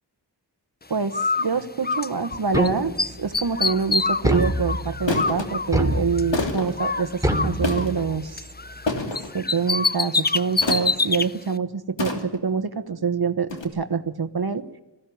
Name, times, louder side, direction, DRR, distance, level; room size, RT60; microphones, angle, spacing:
voice 1, 0.9-8.4 9.3-14.6, right 5 dB, 60° right, 9 dB, 1.2 m, -26 dB
Bird, 1.1-2.7 3.0-6.4 6.8-8.9 9.2-11.3, left 3 dB, 20° left, 0.7 m, -26 dB
sound 1, 2.5-3.2 4.2-5.1 5.7-6.5 7.2-8.2, right 1 dB, 10° right, 3.2 m, -25 dB
sound 2, 3.9-4.1 5.1-5.5 6.3-6.8 7.6-8.1 8.9-9.3 10.6-11.0 12.0-12.5 13.5-13.6, left 3 dB, 90° left, 3.0 m, -27 dB
21.0 x 16.0 x 9.3 m, 1.0 s
wide cardioid pair, 55°, 43 cm